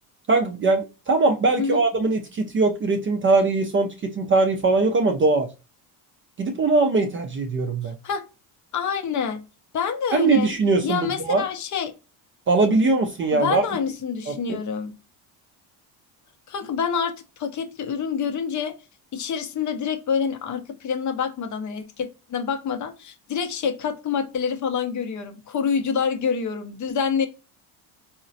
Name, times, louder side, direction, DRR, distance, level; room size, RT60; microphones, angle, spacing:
voice 1, 0.3-5.5 6.4-7.9 10.1-11.4 12.5-13.6 14.3-14.6, right 3 dB, 30° right, 0.3 m, -21 dB
voice 2, 8.7-9.4 9.7-10.5 10.8-11.9 13.3-15.0 16.5-18.8 19.1-27.3, left 6 dB, 40° left, 0.5 m, -27 dB
3.8 x 2.1 x 2.6 m
supercardioid pair, 80°, 48 cm